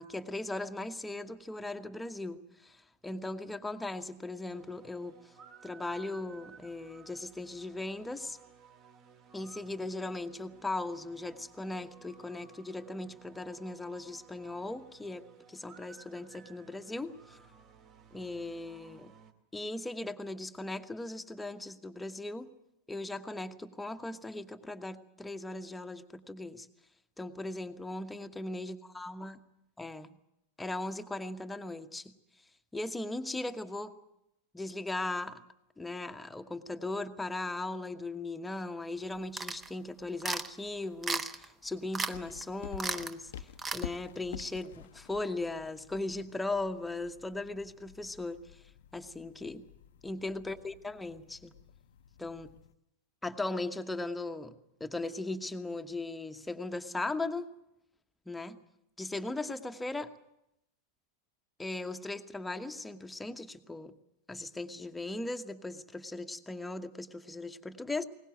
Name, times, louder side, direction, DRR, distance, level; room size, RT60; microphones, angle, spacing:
voice 1, 0.0-5.1 5.6-8.4 9.3-15.2 15.5-17.4 18.1-19.1 19.5-22.5 22.9-26.7 27.2-29.4 29.8-30.2 30.6-32.2 32.7-33.9 34.5-35.4 35.8-48.4 48.9-49.7 50.0-51.5 52.2-52.5 53.2-57.5 58.3-58.6 59.0-60.1 61.6-63.9 64.3-68.0, left 2 dB, 5° left, 8 dB, 1.2 m, -38 dB
sound 1, 4.5-19.3, right 6 dB, 35° right, 2.3 m, -57 dB
sound 2, 39.4-39.7 40.2-40.5 41.0-41.5 41.9-42.1 42.4-42.5 42.8-43.1 43.6-43.8, right 4 dB, 15° right, 1.0 m, -34 dB
sound 3, 42.1-52.7, left 10 dB, 60° left, 0.8 m, -50 dB
21.5 x 19.0 x 7.9 m, 0.84 s
figure-of-eight pair, 90°, 0 cm